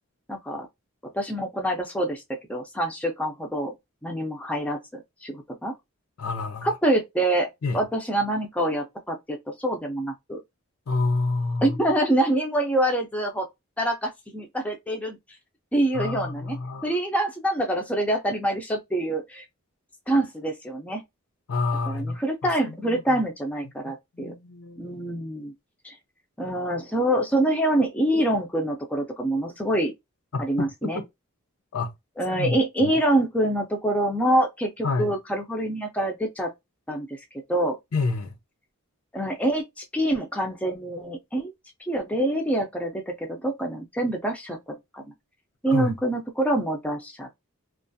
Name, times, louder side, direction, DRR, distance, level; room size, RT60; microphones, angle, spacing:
voice 1, 0.3-0.7 1.1-2.2 2.5-3.7 4.0-5.7 6.6-10.4 11.6-13.5 13.8-15.2 15.7-16.6 16.8-19.4 20.1-21.0 21.9-24.3 24.8-25.5 25.8-25.9 26.4-29.9 30.4-31.0 32.2-36.5 36.9-37.2 37.5-37.8 39.1-41.5 41.9-45.0 45.6-47.3, right 1 dB, 5° left, 0.4 m, -26 dB
voice 2, 6.2-6.7 7.6-7.8 10.9-11.8 15.9-16.9 21.5-22.2 22.7-23.2 23.8-25.0 30.3-31.0 31.7-31.9 32.3-32.9 34.8-35.1 37.9-38.4 45.7-45.9, left 3 dB, 80° left, 0.6 m, -28 dB
2.4 x 2.3 x 2.6 m
head